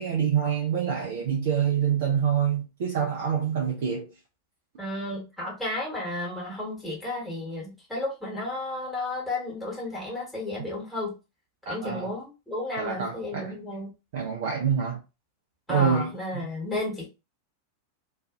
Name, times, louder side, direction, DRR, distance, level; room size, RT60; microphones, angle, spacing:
voice 1, 0.0-4.1 11.7-12.1 12.8-13.5 14.1-15.0 15.7-16.1, right 8 dB, 55° right, 0.5 m, -26 dB
voice 2, 4.8-11.1 11.7-13.9 15.7-17.1, left 2 dB, 5° left, 1.2 m, -33 dB
2.4 x 2.3 x 2.4 m
figure-of-eight pair, 90°, 0 cm